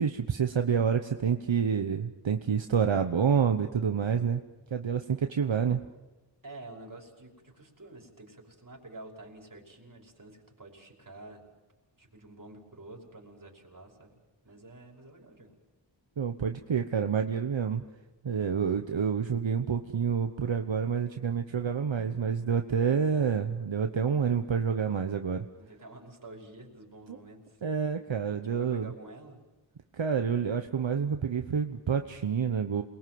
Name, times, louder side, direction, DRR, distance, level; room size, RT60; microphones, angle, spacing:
voice 1, 0.0-4.4 4.7-5.8 16.2-17.8 18.2-25.5 27.1-27.2 27.6-28.9 29.9-32.8, right 7 dB, 75° right, 6 dB, 1.1 m, -28 dB
voice 2, 6.4-11.4 12.0-14.2 14.4-15.6 25.5-27.6 28.4-29.4, right 2 dB, 45° right, 0 dB, 5.6 m, -49 dB
28.0 x 22.0 x 7.8 m, 1.1 s
wide cardioid pair, 85°, 46 cm